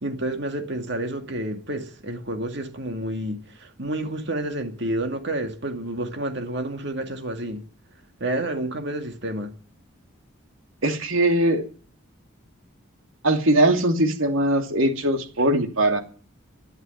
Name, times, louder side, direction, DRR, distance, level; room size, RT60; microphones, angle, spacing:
voice 1, 0.0-7.6 8.2-9.5, right 1 dB, 55° right, 2.3 m, -29 dB
voice 2, 10.8-11.7 13.2-16.0, right 1 dB, 75° right, 2.6 m, -21 dB
12.5 x 11.0 x 9.6 m
head